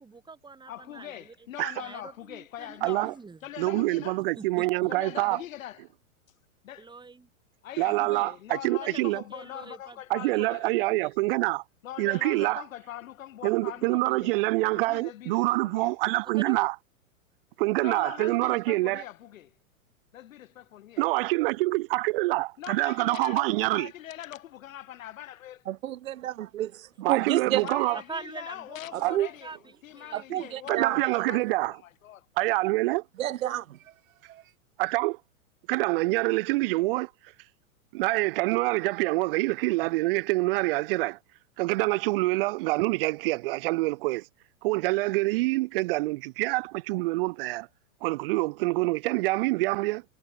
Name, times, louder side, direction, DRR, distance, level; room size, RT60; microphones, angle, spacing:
voice 1, 0.0-1.3 1.8-3.4 4.4-4.7 6.8-7.3 8.9-10.0 10.3-10.5 11.0-11.1 16.4-16.7 27.0-27.4 27.9-29.6 29.9-30.4, right 4 dB, 10° right, 4.7 m, -44 dB
voice 2, 0.7-3.2 3.4-4.2 4.9-5.8 6.6-6.8 7.6-11.1 11.8-14.3 14.7-15.9 17.8-19.5 20.1-21.0 22.6-25.6 27.6-29.5 29.8-32.3, left 12 dB, 70° left, 3.0 m, -42 dB
voice 3, 2.8-3.1 3.6-5.4 7.8-9.2 10.1-11.6 12.0-12.6 13.4-16.8 17.6-19.0 21.0-23.9 27.0-28.0 29.0-29.2 30.7-31.8 32.4-33.0 34.8-35.2 35.7-37.1 37.9-41.2 41.6-44.3 44.6-47.7 48.0-50.0, right 21 dB, 40° right, 0.5 m, -26 dB
voice 4, 25.7-27.7 28.9-29.3 30.1-31.0 33.2-33.8 34.3-34.4, right 12 dB, 70° right, 3.3 m, -30 dB
hypercardioid pair, 120°, 42 cm